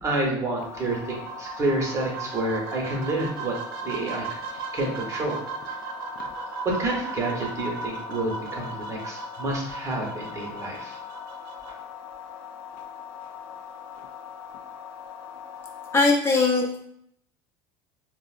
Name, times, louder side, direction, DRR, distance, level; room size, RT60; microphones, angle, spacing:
voice 1, 0.0-4.3 4.5-5.4 6.6-10.9, right 2 dB, 25° right, -1 dB, 0.9 m, -29 dB
sound 1, 0.6-16.1, left 8 dB, 75° left, 0.4 m, -41 dB
sound 2, 0.7-11.7, right 5 dB, 90° right, 0.5 m, -37 dB
voice 2, 15.9-16.8, left 3 dB, 20° left, -1 dB, 0.7 m, -20 dB
3.8 x 2.0 x 2.4 m, 0.71 s
supercardioid pair, 120°, 12 cm